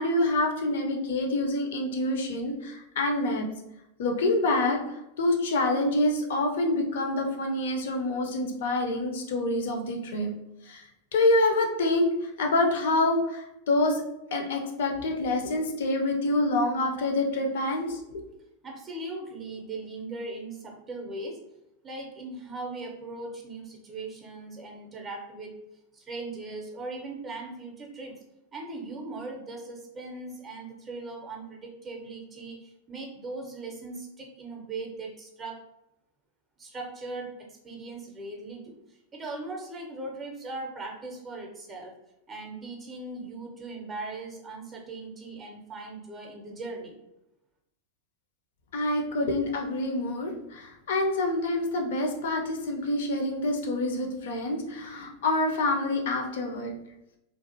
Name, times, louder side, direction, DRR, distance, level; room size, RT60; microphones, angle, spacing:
voice 1, 0.0-3.5 4.0-4.8 5.2-10.3 10.7-10.8 11.1-14.0 14.3-18.2 48.7-56.7, left 2 dB, 55° left, 3 dB, 0.5 m, -27 dB
voice 2, 18.6-21.4 21.8-25.5 25.9-28.2 28.5-35.6 36.6-42.0 42.3-47.0, right 2 dB, 20° right, 0 dB, 0.5 m, -39 dB
2.5 x 2.3 x 2.6 m, 0.87 s
figure-of-eight pair, 90°, 0 cm